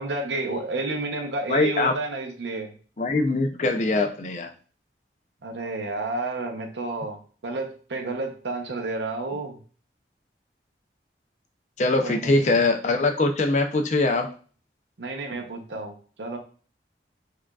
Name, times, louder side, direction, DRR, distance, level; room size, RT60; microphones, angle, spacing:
voice 1, 0.0-2.7 5.4-9.6 12.0-12.4 15.0-15.9 16.2-16.4, right 2 dB, 80° right, 3 dB, 0.7 m, -30 dB
voice 2, 1.5-1.9 3.0-4.5 11.8-14.3, left 2 dB, 40° left, 5 dB, 0.4 m, -22 dB
4.8 x 2.4 x 2.3 m, 0.40 s
head